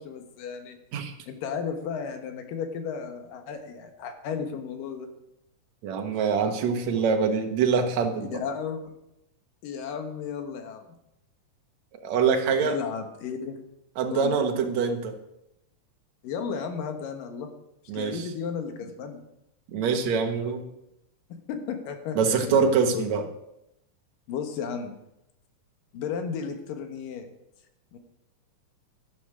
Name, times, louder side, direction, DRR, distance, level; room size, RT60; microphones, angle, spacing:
voice 1, 0.0-0.8 1.3-5.1 8.3-8.9 9.6-10.8 12.6-13.6 14.1-14.3 16.2-17.5 17.9-19.2 21.3-23.0 24.3-24.9 25.9-27.3 27.9-28.0, left 6 dB, 80° left, 6 dB, 3.0 m, -34 dB
voice 2, 5.8-8.4 12.0-12.8 14.0-15.2 17.9-18.2 19.7-20.7 22.1-23.2, right 5 dB, 65° right, 4 dB, 2.3 m, -24 dB
12.5 x 11.5 x 4.9 m, 0.84 s
omnidirectional pair, 3.9 m